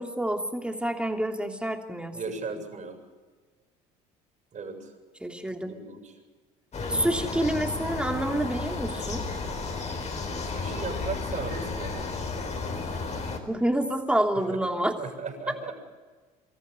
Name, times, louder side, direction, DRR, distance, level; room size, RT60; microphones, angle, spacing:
voice 1, 0.0-2.2 5.2-5.7 6.9-9.3 13.5-14.9, right 1 dB, 5° right, 3 dB, 3.0 m, -28 dB
voice 2, 2.1-3.0 4.5-4.9 5.6-6.1 10.5-12.3 14.3-14.6 15.0-15.7, right 5 dB, 40° right, 4 dB, 7.4 m, -37 dB
sound 1, 6.7-13.4, left 4 dB, 35° left, 4.4 m, -33 dB
25.5 x 14.5 x 9.8 m, 1.4 s
hypercardioid pair, 70°, 19 cm